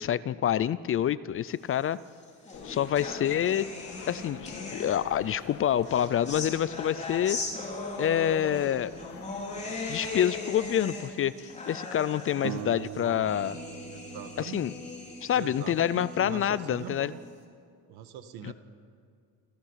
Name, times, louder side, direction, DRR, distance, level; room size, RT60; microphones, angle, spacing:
voice 1, 0.0-2.0 2.6-3.7 4.1-7.4 8.0-8.9 9.9-13.6 14.4-14.7 15.2-17.1 18.4-18.5, left 10 dB, 35° left, 17 dB, 0.4 m, -27 dB
sound 1, 1.9-5.3 5.8-17.3, left 2 dB, 20° left, 3.3 m, -39 dB
sound 2, 2.5-10.9, left 6 dB, 55° left, 2.4 m, -46 dB
sound 3, 12.4-15.6, right 20 dB, 60° right, 0.4 m, -41 dB
voice 2, 13.9-14.8 15.3-17.2 17.9-18.5, right 9 dB, 75° right, 9 dB, 1.8 m, -42 dB
28.5 x 16.0 x 5.7 m, 2.3 s
cardioid pair, 140°, 38 cm